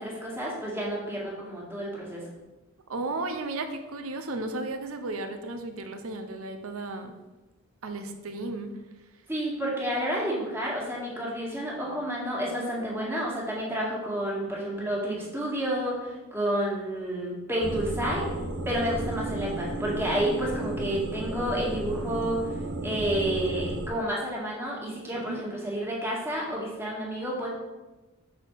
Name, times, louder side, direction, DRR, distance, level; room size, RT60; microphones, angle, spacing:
voice 1, 0.0-2.2 9.3-18.3 18.7-22.4 22.8-27.5, right 1 dB, 10° right, -4 dB, 1.8 m, -30 dB
voice 2, 2.9-7.1 7.8-8.7 25.3-25.4, right 2 dB, 85° right, 7 dB, 0.8 m, -34 dB
sound 1, 17.6-23.9, right 1 dB, 55° right, 1.1 m, -33 dB
6.0 x 4.3 x 6.4 m, 1.1 s
head